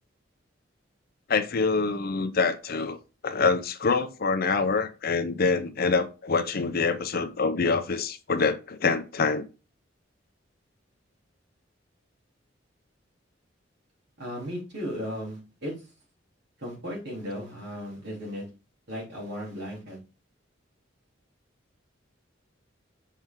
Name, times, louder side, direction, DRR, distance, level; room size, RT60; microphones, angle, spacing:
voice 1, 1.3-3.0 3.2-9.4, left 4 dB, 55° left, 0.6 m, -25 dB
voice 2, 14.2-15.7 16.6-18.4 18.9-20.0, equal, 60° right, 3.2 m, -35 dB
5.5 x 4.7 x 3.6 m
head